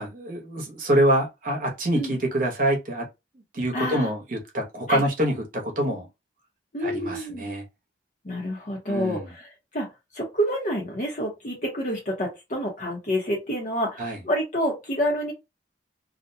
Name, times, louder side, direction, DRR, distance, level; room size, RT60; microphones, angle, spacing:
voice 1, 0.0-3.1 3.5-6.1 6.8-7.6 8.9-9.3 14.0-14.2, right 1 dB, 50° right, 0.8 m, -25 dB
voice 2, 3.7-4.1 4.9-5.0 6.7-7.5 8.2-9.9 10.1-15.3, equal, 45° left, 0.7 m, -28 dB
2.4 x 2.1 x 2.6 m
head